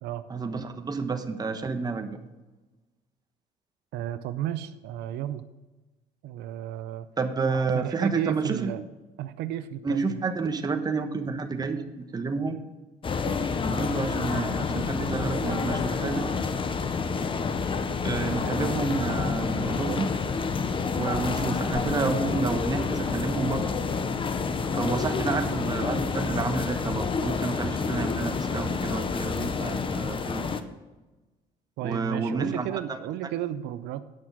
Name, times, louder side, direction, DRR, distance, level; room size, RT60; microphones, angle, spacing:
voice 1, 0.3-2.2 7.2-8.7 9.8-12.6 13.7-16.3 18.0-20.1 21.0-23.6 24.7-30.6 31.8-33.0, right 4 dB, 25° right, 7 dB, 1.1 m, -30 dB
voice 2, 3.9-5.4 6.2-7.1 7.5-8.8 9.2-10.2 14.2-14.3 31.8-34.0, right 12 dB, 85° right, 12 dB, 0.6 m, -33 dB
sound 1, 13.0-30.6, left 5 dB, 30° left, 0.8 m, -28 dB
9.4 x 6.2 x 7.3 m, 1.1 s
cardioid pair, 110°, 17 cm